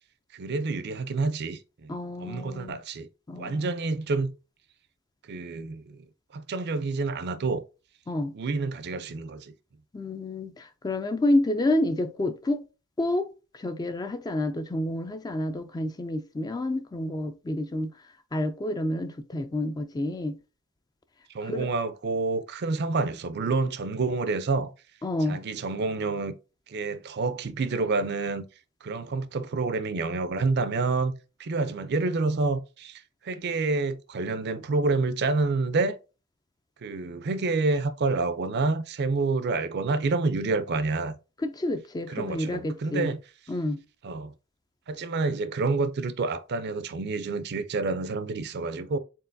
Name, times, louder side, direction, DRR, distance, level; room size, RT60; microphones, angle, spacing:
voice 1, 0.3-1.9 2.2-3.1 3.4-4.3 5.3-6.1 6.3-7.6 8.3-9.5 21.3-24.7 25.3-26.3 26.7-28.4 28.8-31.1 31.4-36.0 36.8-41.1 42.1-43.2 44.0-44.3 44.9-49.0, right 3 dB, 50° right, 0.5 m, -28 dB
voice 2, 1.9-2.8 3.3-3.7 8.1-8.3 9.9-12.6 13.0-17.9 18.3-20.3 21.4-21.7 25.0-25.4 41.4-43.1 43.5-43.8, left 1 dB, 20° left, 0.3 m, -29 dB
4.5 x 3.8 x 2.6 m
head